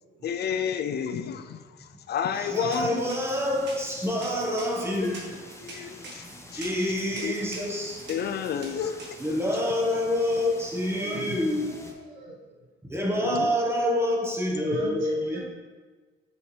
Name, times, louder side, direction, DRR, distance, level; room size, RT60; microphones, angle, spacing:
voice 1, 0.2-1.6 2.1-3.0 5.6-6.2 6.5-6.6 7.2-7.3 8.1-8.9 13.2-13.5, left 8 dB, 55° left, 10 dB, 0.4 m, -30 dB
voice 2, 2.3-5.2 6.5-8.0 9.2-11.8 12.9-15.4, left 1 dB, 10° right, -2 dB, 1.3 m, -27 dB
sound 1, 2.5-9.6, right 3 dB, 65° right, 1.6 m, -44 dB
sound 2, 3.0-11.9, left 1 dB, 15° left, 0.8 m, -47 dB
voice 3, 10.9-12.4 14.6-15.4, right 1 dB, 80° right, -2 dB, 1.5 m, -39 dB
6.8 x 4.6 x 3.3 m, 1.4 s
cardioid pair, 90°, 20 cm